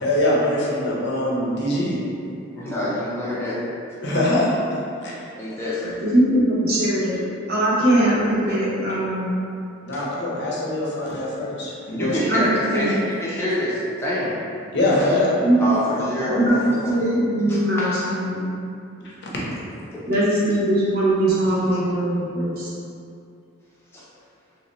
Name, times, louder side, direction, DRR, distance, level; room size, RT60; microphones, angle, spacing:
voice 1, 0.0-2.0 4.0-5.1 9.8-12.2 14.7-15.3, left 1 dB, 55° left, -5 dB, 0.7 m, -23 dB
voice 2, 2.6-3.6 3.9-4.2 5.3-6.0 9.9-10.0 11.9-14.4 15.6-16.9 17.5-17.9 19.9-20.0 21.6-21.8 23.9-24.0, left 1 dB, 10° left, -8 dB, 0.6 m, -26 dB
voice 3, 6.0-7.2 7.5-9.4 12.3-13.0 15.4-15.8 16.3-18.5 20.1-22.7, right 1 dB, 45° right, -8 dB, 0.7 m, -21 dB
3.1 x 2.7 x 3.1 m, 2.5 s
head